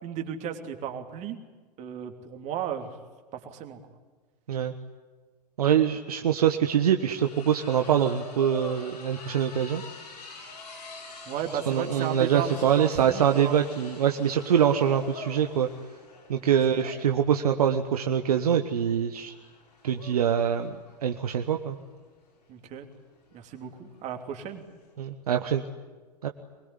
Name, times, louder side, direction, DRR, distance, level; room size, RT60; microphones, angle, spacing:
voice 1, 0.0-1.4 1.8-2.9 3.3-3.8 11.3-13.6 16.4-16.9 22.5-22.9 23.3-24.6, right 9 dB, 35° right, 5 dB, 3.1 m, -35 dB
voice 2, 5.6-9.8 11.7-15.7 16.3-19.3 19.8-20.8 21.0-21.8 25.0-25.6 26.2-26.3, right 9 dB, 65° right, 6 dB, 1.4 m, -24 dB
sound 1, 5.7-5.8 6.1-24.9, left 3 dB, 70° left, 7.5 m, -46 dB
24.0 x 21.5 x 9.8 m, 1.4 s
figure-of-eight pair, 95°, 21 cm